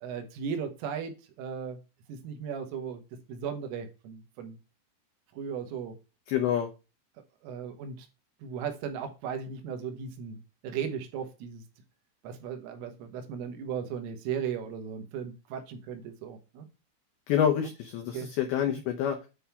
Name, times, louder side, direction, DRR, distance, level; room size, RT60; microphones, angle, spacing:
voice 1, 0.0-1.8 2.1-3.0 3.3-4.6 5.3-6.0 7.4-8.1 8.4-10.4 10.6-11.6 12.2-16.7 17.6-17.7 18.1-18.3 18.7-18.8, right 7 dB, 90° right, 6 dB, 3.8 m, -36 dB
voice 2, 6.3-6.7 17.3-19.3, left 9 dB, 85° left, 3 dB, 2.2 m, -27 dB
9.3 x 3.6 x 5.6 m, 0.30 s
omnidirectional pair, 5.6 m